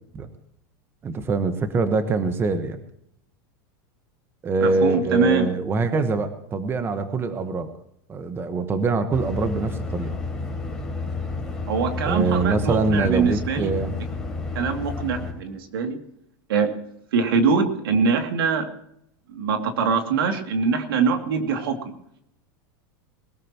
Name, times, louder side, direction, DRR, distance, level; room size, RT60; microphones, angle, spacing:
voice 1, 1.0-2.8 4.4-7.7 8.1-10.2 12.0-14.0, right 3 dB, 20° right, 9 dB, 1.2 m, -24 dB
voice 2, 4.6-5.5 11.7-13.7 14.5-16.0 16.5-16.7 17.1-18.7 19.3-21.9, right 5 dB, 90° right, 5 dB, 2.5 m, -23 dB
sound 1, 9.1-15.3, left 3 dB, 5° left, 3.7 m, -31 dB
21.5 x 13.5 x 3.0 m, 0.74 s
supercardioid pair, 145°, 12 cm